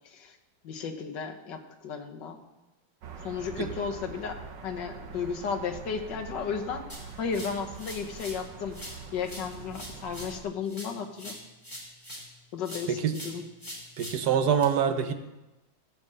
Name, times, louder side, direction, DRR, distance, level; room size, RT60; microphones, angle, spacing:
voice 1, 0.1-0.4 0.6-2.4 3.2-4.4 4.6-8.8 9.1-11.4 12.5-13.4, left 6 dB, 80° left, 3 dB, 1.8 m, -34 dB
sound 1, 3.0-10.4, right 5 dB, 80° right, 1.8 m, -44 dB
sound 2, 6.9-8.4 8.7-12.3 12.6-14.6, equal, 10° left, 2.9 m, -44 dB
voice 2, 14.0-15.1, right 7 dB, 65° right, 9 dB, 1.3 m, -25 dB
14.5 x 4.9 x 7.7 m, 1.0 s
omnidirectional pair, 1.9 m